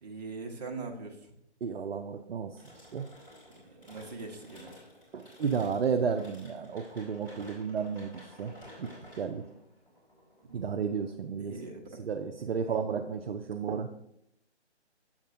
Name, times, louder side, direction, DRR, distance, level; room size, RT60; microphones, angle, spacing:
voice 1, 0.0-1.3 3.5-4.8 10.5-10.7 11.4-12.0 12.6-12.8, right 3 dB, 35° right, 2 dB, 1.1 m, -42 dB
voice 2, 1.6-3.1 5.1-8.5 8.8-8.9 9.2-9.4 10.5-11.6 12.0-13.9, right 6 dB, 60° right, 4 dB, 0.6 m, -32 dB
sound 1, 2.6-11.2, left 1 dB, 10° left, 2.9 m, -53 dB
7.8 x 7.2 x 2.6 m, 0.76 s
figure-of-eight pair, 145°, 35 cm